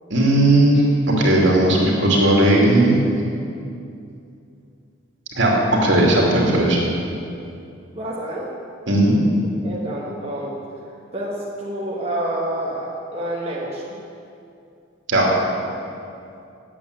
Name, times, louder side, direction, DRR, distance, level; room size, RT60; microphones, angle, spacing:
voice 1, 0.1-2.9 5.4-6.8 8.9-9.2 15.1-15.2, right 1 dB, 65° right, -3 dB, 2.7 m, -16 dB
voice 2, 7.9-8.5 9.6-10.6 11.1-14.0, right 1 dB, 30° right, -5 dB, 1.2 m, -28 dB
8.8 x 8.5 x 9.5 m, 2.6 s
head